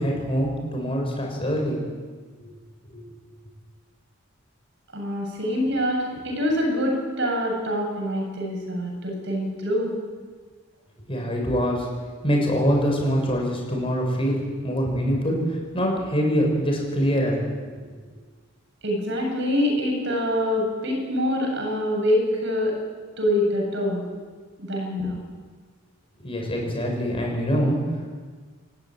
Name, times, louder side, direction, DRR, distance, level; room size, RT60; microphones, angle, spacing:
voice 1, 0.0-1.8 2.4-2.5 2.9-3.0 11.1-11.9 12.2-17.4 26.2-27.8, equal, 25° left, 0 dB, 6.6 m, -24 dB
voice 2, 4.9-9.9 18.8-22.8 23.2-24.1 24.6-25.2, left 1 dB, 55° right, 1 dB, 7.6 m, -25 dB
29.5 x 15.0 x 9.9 m, 1.5 s
head